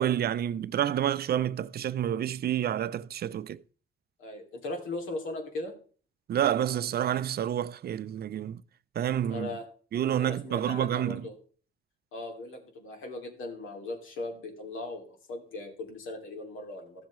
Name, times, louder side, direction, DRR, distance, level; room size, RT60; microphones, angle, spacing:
voice 1, 0.0-3.6 6.3-8.6 9.0-9.5 9.9-11.3, right 10 dB, 50° right, 0.5 m, -29 dB
voice 2, 4.2-5.7 9.3-9.6 10.2-11.3 12.1-17.1, left 2 dB, 85° left, 2.7 m, -38 dB
15.0 x 7.3 x 3.1 m
cardioid pair, 90°, 20 cm